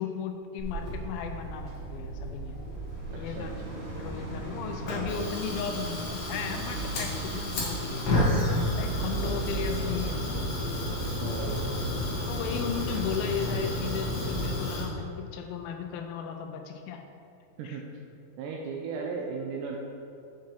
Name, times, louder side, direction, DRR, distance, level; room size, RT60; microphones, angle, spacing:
voice 1, 0.0-2.6 3.1-3.5 4.0-8.1 8.8-10.6 12.3-17.0 17.6-17.8, left 7 dB, 85° left, 5 dB, 2.3 m, -35 dB
Fire, 0.6-14.9, left 1 dB, 55° left, 1.7 m, -32 dB
sound 1, 1.7-12.9 13.5-13.6, right 1 dB, 55° right, 2.6 m, -41 dB
voice 2, 3.2-3.8 8.9-9.8 11.2-11.8 17.6-17.9 18.4-19.8, right 5 dB, 80° right, 0 dB, 1.9 m, -37 dB
7.2 x 4.7 x 4.5 m, 2.5 s
omnidirectional pair, 4.2 m